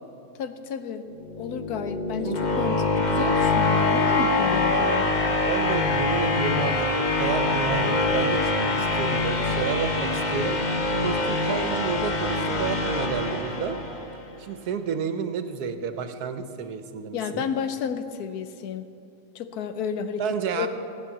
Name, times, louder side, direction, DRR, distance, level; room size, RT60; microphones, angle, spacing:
voice 1, 0.4-1.1 1.4-5.1 17.1-18.9 19.3-20.7, left 7 dB, 85° left, 10 dB, 1.3 m, -31 dB
sound 1, 1.2-14.2, left 2 dB, 35° left, 0.9 m, -24 dB
voice 2, 2.2-2.6 5.5-10.6 11.0-13.8 14.4-17.5 20.2-20.7, right 6 dB, 90° right, 9 dB, 1.4 m, -30 dB
16.5 x 8.3 x 7.2 m, 2.7 s
omnidirectional pair, 1.6 m